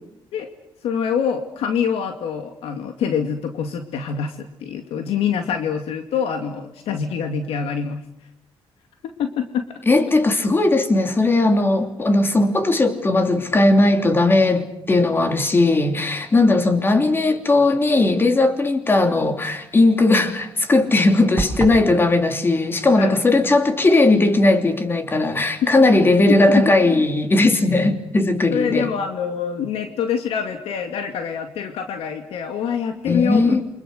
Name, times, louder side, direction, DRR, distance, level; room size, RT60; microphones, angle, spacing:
voice 1, 0.8-8.0 9.0-9.6 23.0-23.2 25.6-25.7 26.5-26.6 28.5-33.6, left 7 dB, 90° left, 2.3 m, -25 dB
voice 2, 9.9-28.9 33.1-33.6, left 2 dB, 25° left, 3.0 m, -17 dB
sound 1, 21.4-21.9, right 3 dB, 15° right, 6.6 m, -25 dB
28.5 x 25.5 x 6.7 m
cardioid pair, 135°, 10 cm